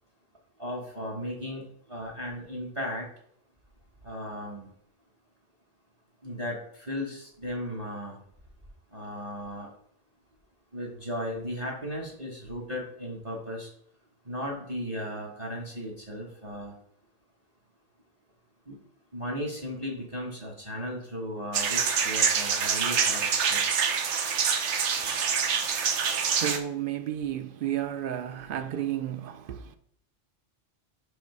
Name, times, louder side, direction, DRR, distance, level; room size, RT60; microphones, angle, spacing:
voice 1, 0.6-1.6 1.9-3.1 4.0-4.7 6.2-8.2 8.9-9.7 10.7-13.7 14.3-16.7 18.7-18.8 19.1-23.7, equal, 30° right, 1.2 m, -36 dB
sound 1, 21.5-26.6, right 6 dB, 80° right, 1.0 m, -26 dB
voice 2, 26.2-29.8, right 10 dB, 60° right, 0.6 m, -32 dB
5.3 x 4.9 x 4.7 m
omnidirectional pair, 1.2 m